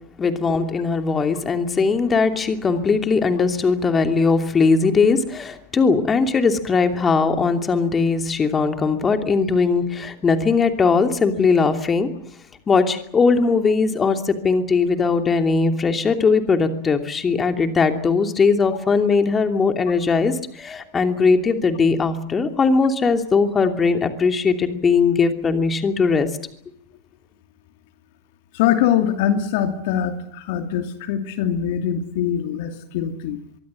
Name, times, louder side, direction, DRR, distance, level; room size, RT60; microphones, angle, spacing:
voice 1, 0.2-12.1 12.7-26.3, left 4 dB, 20° left, 7 dB, 2.9 m, -19 dB
voice 2, 28.5-33.4, left 9 dB, 55° left, 7 dB, 2.6 m, -23 dB
24.5 x 23.5 x 7.6 m, 0.65 s
figure-of-eight pair, 90°, 0 cm